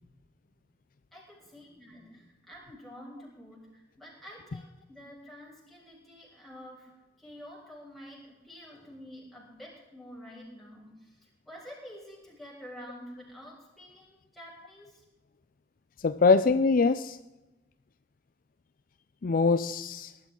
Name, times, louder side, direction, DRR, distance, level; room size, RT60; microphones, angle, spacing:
voice 1, 1.1-15.0, equal, ahead, -5 dB, 6.3 m, -48 dB
voice 2, 16.0-17.2 19.2-20.1, left 4 dB, 50° left, 12 dB, 0.4 m, -23 dB
19.5 x 12.0 x 3.8 m, 1.0 s
head